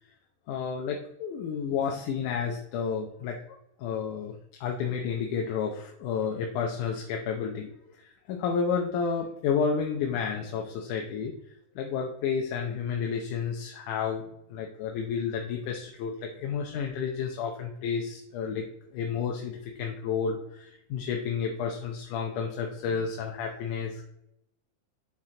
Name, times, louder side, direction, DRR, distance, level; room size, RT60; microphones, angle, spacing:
voice 1, 0.5-3.4 3.8-4.3 4.6-7.7 8.0-11.3 11.8-14.2 14.5-18.6 18.9-24.0, left 6 dB, 85° left, 1 dB, 2.3 m, -31 dB
7.4 x 6.1 x 3.8 m, 0.77 s
omnidirectional pair, 3.5 m